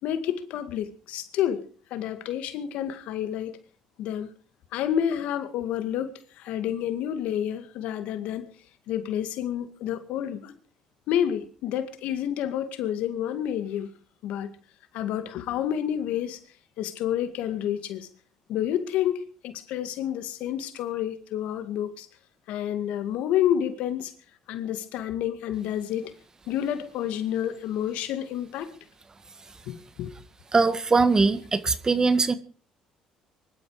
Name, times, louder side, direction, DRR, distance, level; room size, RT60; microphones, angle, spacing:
voice 1, 0.0-1.6 1.9-3.6 4.0-4.3 4.7-8.5 8.9-10.6 11.1-13.9 14.2-14.5 14.9-16.4 16.8-18.1 18.5-22.1 22.5-24.1 24.5-26.1 26.5-28.7 29.7-30.1, left 10 dB, 75° left, 2.0 m, -29 dB
voice 2, 30.5-32.3, right 4 dB, 30° right, 1.7 m, -21 dB
23.0 x 12.5 x 5.0 m
supercardioid pair, 75°, 2 cm